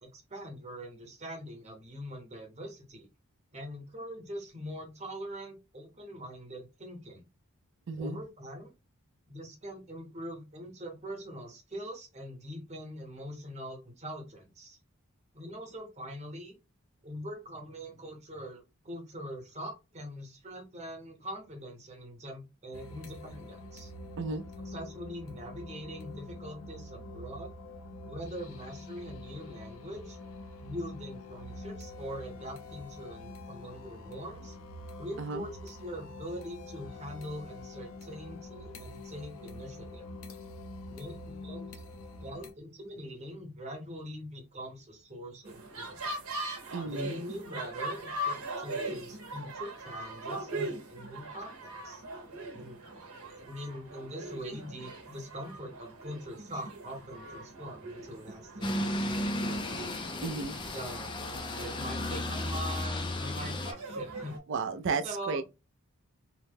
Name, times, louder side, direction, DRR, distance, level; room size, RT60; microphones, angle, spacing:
voice 1, 0.0-3.1 3.5-7.3 8.0-8.7 9.3-14.8 15.3-16.5 17.0-23.9 24.6-27.5 28.1-30.2 30.6-34.6 35.0-40.1 40.9-41.8 42.2-46.1 46.8-52.0 52.5-52.8 53.3-59.7 60.7-61.1 61.5-64.4 65.0-65.4, equal, 30° right, 0.9 m, -43 dB
voice 2, 7.9-8.2 24.2-24.4 35.2-35.4 46.7-47.1 60.2-60.6 64.5-65.4, right 4 dB, 55° right, 0.4 m, -33 dB
sound 1, 22.7-42.5, left 2 dB, 70° left, 0.6 m, -46 dB
sound 2, 45.4-64.4, right 1 dB, 75° right, 0.8 m, -41 dB
sound 3, 58.6-63.7, left 1 dB, 20° left, 0.3 m, -34 dB
2.8 x 2.1 x 3.4 m
head